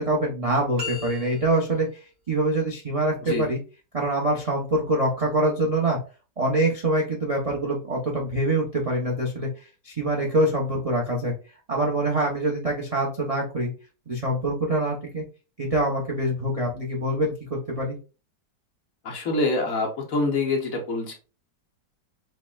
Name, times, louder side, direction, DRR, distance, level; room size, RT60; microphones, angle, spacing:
voice 1, 0.0-3.6 3.9-6.0 6.4-9.5 9.8-11.3 11.7-13.7 14.1-15.2 15.6-18.0, right 1 dB, 70° right, 0 dB, 0.3 m, -25 dB
sound 1, 0.8-1.9, left 4 dB, 55° right, 1.1 m, -36 dB
voice 2, 19.0-21.1, left 2 dB, 55° left, 2 dB, 1.2 m, -25 dB
6.2 x 2.1 x 2.3 m, 0.33 s
omnidirectional pair, 1.9 m